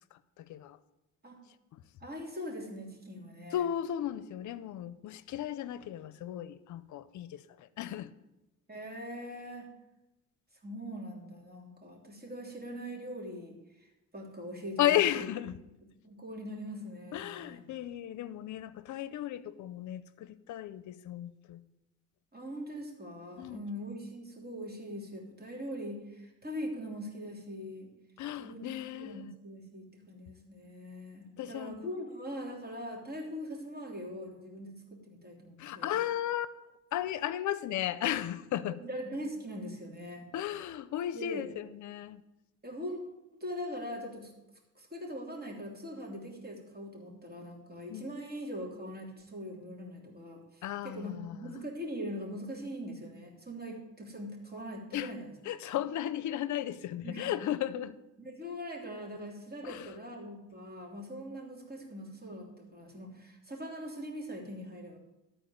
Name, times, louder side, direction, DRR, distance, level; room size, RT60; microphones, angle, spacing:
voice 1, 0.1-0.8 1.7-1.8 3.5-8.1 14.8-15.6 17.1-21.6 23.4-23.6 28.2-29.3 31.4-31.9 35.6-36.6 36.9-38.8 40.3-42.2 47.9-48.1 50.6-51.5 54.9-55.1 55.4-58.0 59.6-59.9, left 12 dB, 75° left, 0.6 m, -35 dB
voice 2, 2.0-3.6 8.7-9.7 10.6-13.5 14.1-15.3 15.6-17.6 22.3-27.9 28.4-35.9 38.7-40.3 41.1-41.4 42.6-43.0 43.3-44.3 44.7-55.2 57.0-57.3 58.2-65.0, equal, 30° right, 3.3 m, -42 dB
13.5 x 4.5 x 7.9 m
cardioid pair, 90°, 30 cm